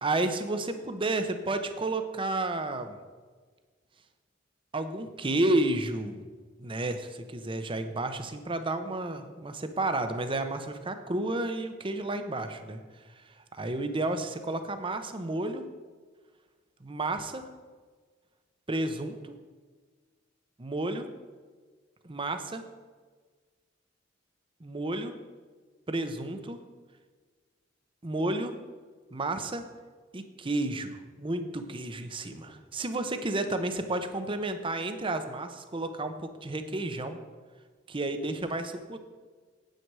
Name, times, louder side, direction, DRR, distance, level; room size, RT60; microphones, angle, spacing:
voice 1, 0.0-3.0 4.7-6.2 6.6-12.8 13.5-15.6 16.8-17.4 18.7-19.3 20.6-21.1 22.0-22.6 24.6-25.2 25.9-26.6 28.0-28.6 29.1-29.6 30.1-37.2 37.9-39.0, right 2 dB, 25° right, 8 dB, 0.8 m, -31 dB
9.2 x 8.8 x 4.7 m, 1.5 s
head